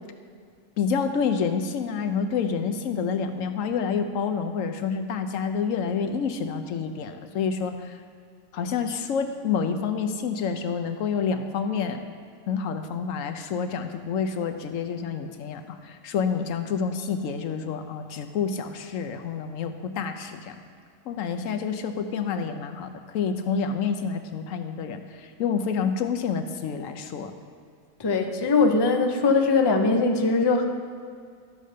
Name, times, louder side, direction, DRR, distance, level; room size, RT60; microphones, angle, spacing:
voice 1, 0.8-8.0 8.5-12.0 12.5-20.6 21.1-27.3, left 6 dB, 75° left, 7 dB, 1.0 m, -28 dB
voice 2, 28.0-30.7, left 3 dB, 30° left, 4 dB, 0.5 m, -21 dB
12.0 x 5.1 x 6.5 m, 2.1 s
omnidirectional pair, 1.4 m